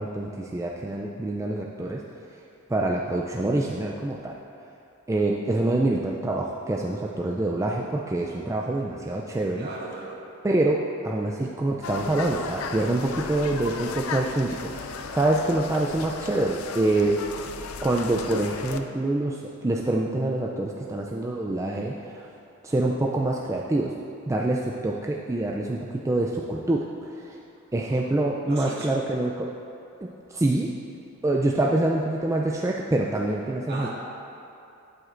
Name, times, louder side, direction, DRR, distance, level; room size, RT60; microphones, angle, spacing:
voice 1, 0.0-2.0 2.7-4.3 5.1-9.7 10.4-17.1 17.8-22.3 22.6-23.9 24.3-27.4 27.7-29.5 30.0-30.7 31.2-33.9, right 2 dB, 15° right, -1 dB, 0.3 m, -26 dB
voice 2, 9.6-10.2 27.9-28.1 28.4-29.0 33.7-33.9, right 2 dB, 50° right, -5 dB, 1.8 m, -37 dB
sound 1, 11.8-18.8, left 5 dB, 85° left, 0.5 m, -35 dB
12.5 x 7.8 x 2.5 m, 2.7 s
head